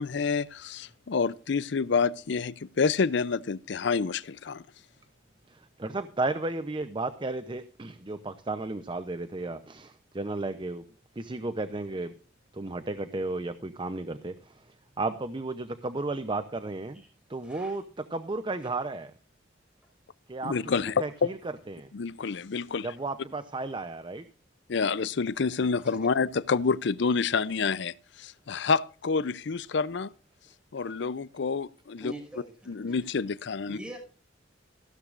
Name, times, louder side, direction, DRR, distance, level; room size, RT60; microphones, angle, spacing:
voice 1, 0.0-4.6 20.4-21.3 21.9-22.9 24.7-30.1 30.7-32.1 32.7-33.8, left 5 dB, 65° left, 0.5 m, -28 dB
voice 2, 5.5-10.8 11.2-12.1 12.5-14.6 15.0-17.0 17.3-19.1 20.3-20.5 21.0-21.4 21.7-21.9 22.8-24.3, right 2 dB, 25° right, 0.7 m, -33 dB
voice 3, 17.4-17.8 26.0-26.1 32.0-32.9 33.7-34.0, right 1 dB, 5° right, 5.7 m, -42 dB
15.0 x 12.5 x 2.5 m
head